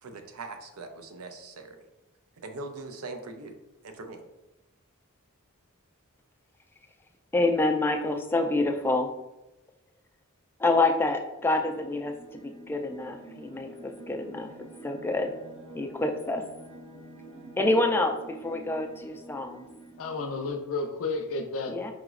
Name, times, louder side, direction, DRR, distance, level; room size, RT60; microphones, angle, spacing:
voice 1, 0.0-1.8 2.4-3.5 3.8-4.2, right 3 dB, 70° right, 6 dB, 0.5 m, -41 dB
voice 2, 7.3-9.1 10.6-12.1 12.4-14.5 14.8-15.3 15.7-16.4 17.6-19.7 21.7-21.9, left 2 dB, 10° left, 4 dB, 0.3 m, -27 dB
sound 1, 11.3-20.5, right 1 dB, 55° right, 1.4 m, -48 dB
voice 3, 20.0-21.9, left 3 dB, 65° left, 5 dB, 0.5 m, -32 dB
4.9 x 3.0 x 2.4 m, 0.96 s
head